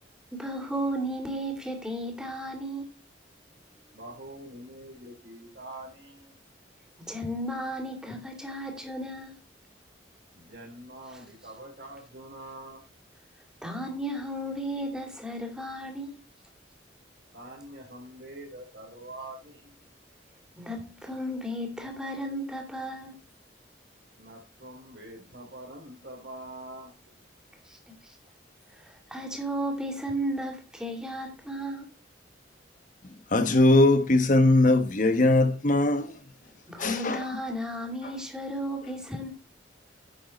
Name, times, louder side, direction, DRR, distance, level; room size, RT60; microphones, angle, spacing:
voice 1, 0.3-3.0 7.0-9.4 13.6-16.1 20.6-23.2 27.7-27.8 28.0-28.1 28.8-31.9 36.7-39.3, right 1 dB, 5° right, 2.7 m, -34 dB
voice 2, 3.9-6.3 10.3-12.8 17.3-19.8 24.2-26.9, right 1 dB, 60° right, 3.3 m, -44 dB
voice 3, 33.3-36.2 36.8-37.3 38.0-38.1, left 2 dB, 45° left, 1.2 m, -21 dB
10.5 x 6.8 x 4.3 m
head